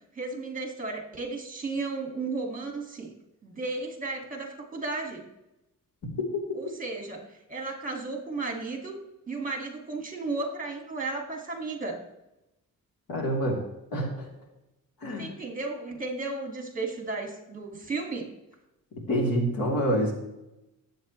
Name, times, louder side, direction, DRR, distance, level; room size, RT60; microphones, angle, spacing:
voice 1, 0.1-3.1 3.4-5.3 6.5-7.2 7.5-9.0 9.3-12.0 15.2-18.3, right 3 dB, 25° right, 2 dB, 2.1 m, -34 dB
voice 2, 13.1-13.6 13.9-14.3 15.0-15.3 19.1-20.1, equal, 85° left, -1 dB, 3.4 m, -26 dB
19.0 x 8.1 x 3.2 m, 0.93 s
wide cardioid pair, 140°, 33 cm